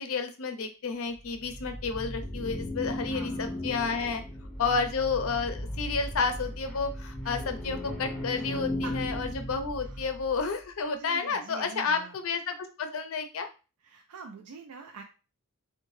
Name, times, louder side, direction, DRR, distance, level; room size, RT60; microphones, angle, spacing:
voice 1, 0.0-4.2 4.6-13.5, left 5 dB, 65° left, 8 dB, 0.5 m, -31 dB
sound 1, 1.1-10.5, left 1 dB, 5° left, 0.6 m, -36 dB
voice 2, 3.0-4.1 4.6-4.8 7.2-7.4 8.8-9.0 9.8-10.1 11.0-12.2 13.8-15.0, right 4 dB, 85° right, 4 dB, 0.4 m, -46 dB
3.6 x 2.2 x 3.1 m, 0.32 s
head